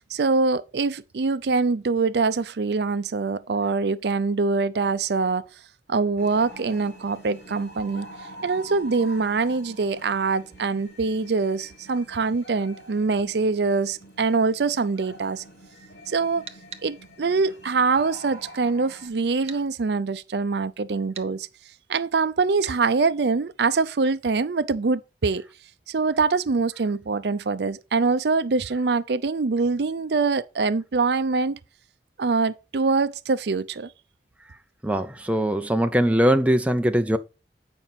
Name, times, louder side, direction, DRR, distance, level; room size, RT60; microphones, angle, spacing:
voice 1, 0.0-5.4 5.9-8.1 8.4-15.4 16.1-16.4 16.8-21.5 21.9-25.4 25.9-31.6 32.2-33.9, right 4 dB, 70° right, 0.5 m, -24 dB
sound 1, 6.2-19.1, right 1 dB, 75° left, 3.5 m, -45 dB
sound 2, 16.5-16.9 19.5-19.6 21.1-21.3 22.6-22.8, right 8 dB, 35° right, 0.8 m, -39 dB
voice 2, 34.8-37.2, equal, 10° right, 0.6 m, -21 dB
9.0 x 5.3 x 4.2 m
head